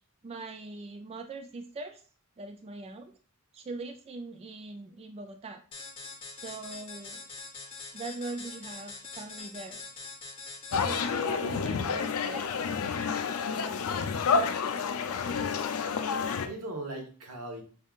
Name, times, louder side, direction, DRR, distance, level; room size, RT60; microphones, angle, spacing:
voice 1, 0.2-2.0 2.4-3.1 3.5-5.6 6.4-7.2 7.9-9.8 10.8-12.5, right 3 dB, 25° right, 6 dB, 0.3 m, -41 dB
sound 1, 5.7-11.3, left 3 dB, 25° left, 0.7 m, -44 dB
sound 2, 10.7-16.5, left 5 dB, 70° left, 0.4 m, -29 dB
voice 2, 15.6-16.0 16.4-17.6, right 2 dB, 90° right, 2 dB, 1.1 m, -41 dB
5.2 x 3.5 x 2.4 m, 0.40 s
head